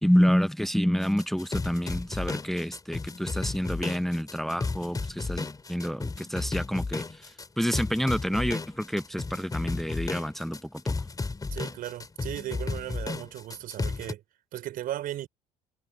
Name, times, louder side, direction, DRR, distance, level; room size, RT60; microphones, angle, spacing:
voice 1, 0.0-11.0, equal, ahead, 0.9 m, -28 dB
sound 1, 1.0-14.1, left 3 dB, 20° left, 3.4 m, -33 dB
voice 2, 11.5-14.2 14.5-15.3, right 13 dB, 55° right, 4.8 m, -36 dB
figure-of-eight pair, 55°, 18 cm